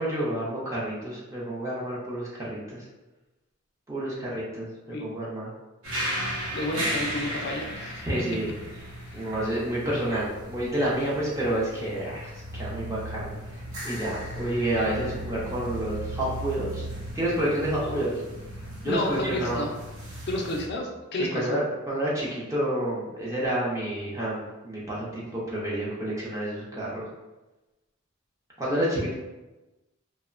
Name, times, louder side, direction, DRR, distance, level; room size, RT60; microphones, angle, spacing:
voice 1, 0.0-2.8 3.9-5.5 8.0-8.6 9.1-18.2 18.8-19.7 21.2-27.1 28.6-29.1, right 1 dB, 15° right, -7 dB, 0.5 m, -29 dB
sound 1, 5.8-20.7, equal, 75° right, 0.7 m, -36 dB
voice 2, 6.5-8.0 9.1-9.2 17.8-18.0 18.8-19.7 20.3-21.6, left 1 dB, 50° left, 1 dB, 0.4 m, -31 dB
2.8 x 2.0 x 2.4 m, 1.1 s
head